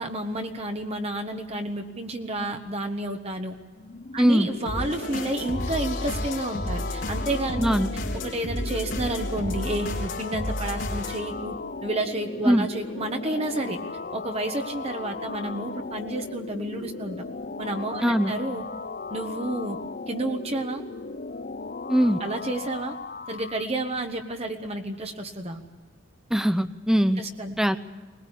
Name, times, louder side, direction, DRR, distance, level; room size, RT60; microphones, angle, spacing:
voice 1, 0.0-3.6 4.1-7.8 8.1-11.5 11.8-13.8 14.1-17.2 17.6-18.6 19.1-19.8 20.1-20.8 22.2-22.9 23.3-25.6 27.2-27.5, right 2 dB, 30° right, 4 dB, 1.4 m, -30 dB
sound 1, 3.8-23.7, left 3 dB, 45° left, 0.6 m, -37 dB
voice 2, 4.2-4.5 7.6-7.9 12.4-12.7 18.0-18.3 21.9-22.2 26.3-27.2 27.6-27.8, equal, 5° right, 12 dB, 0.6 m, -21 dB
sound 2, 4.7-11.2, left 1 dB, 85° left, 3.4 m, -32 dB
21.0 x 21.0 x 8.3 m, 1.3 s
head